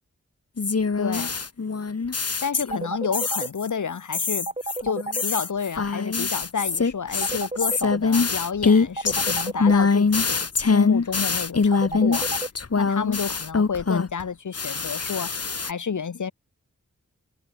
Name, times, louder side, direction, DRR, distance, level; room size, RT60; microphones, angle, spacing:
sound 1, 0.6-2.9 3.1-3.7 4.1-14.2 14.5-15.7, left 4 dB, 55° left, 4.5 m, -23 dB
voice 1, 1.0-1.3 2.4-4.5 4.8-12.3 12.8-15.3 15.6-16.3, left 6 dB, 80° left, 4.6 m, -30 dB
sound 2, 2.7-3.5 4.5-5.2 7.2-8.0 9.0-9.7 11.7-12.5, right 2 dB, 20° right, 3.1 m, -30 dB
cardioid pair, 50°, 30 cm